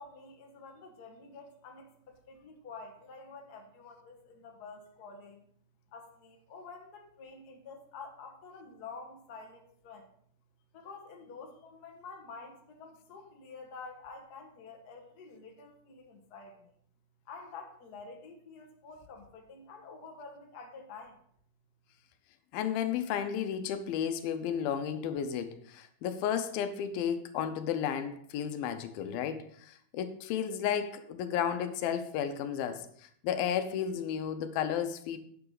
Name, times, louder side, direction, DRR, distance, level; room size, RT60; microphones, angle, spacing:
voice 1, 0.0-5.4 5.9-10.1 10.7-16.7 17.2-21.2, left 4 dB, 55° left, 2 dB, 1.1 m, -49 dB
voice 2, 22.5-35.2, left 8 dB, 85° left, 10 dB, 2.6 m, -33 dB
9.7 x 8.0 x 3.9 m, 0.64 s
omnidirectional pair, 4.1 m